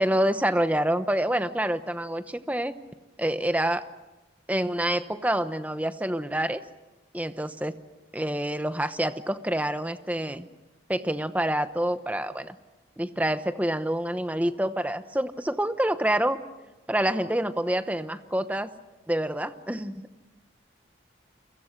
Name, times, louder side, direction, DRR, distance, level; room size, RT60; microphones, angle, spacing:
voice 1, 0.0-2.7 3.2-3.8 4.5-6.6 7.1-7.8 8.1-10.5 10.9-12.6 13.0-16.4 16.9-18.7 19.1-20.1, right 1 dB, 10° right, 10 dB, 0.9 m, -27 dB
30.0 x 23.5 x 6.5 m, 1.1 s
head